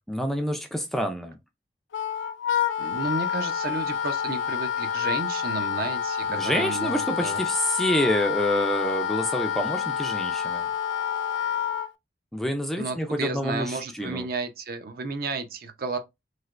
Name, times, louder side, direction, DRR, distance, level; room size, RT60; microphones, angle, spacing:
voice 1, 0.1-1.4 6.3-10.7 12.3-14.3, equal, ahead, 0.3 m, -27 dB
Wind instrument woodwind instrument, 1.9-11.9, left 8 dB, 80° left, 0.4 m, -28 dB
voice 2, 2.8-7.4 12.8-16.0, right 3 dB, 50° right, 0.5 m, -32 dB
3.2 x 2.8 x 2.4 m
head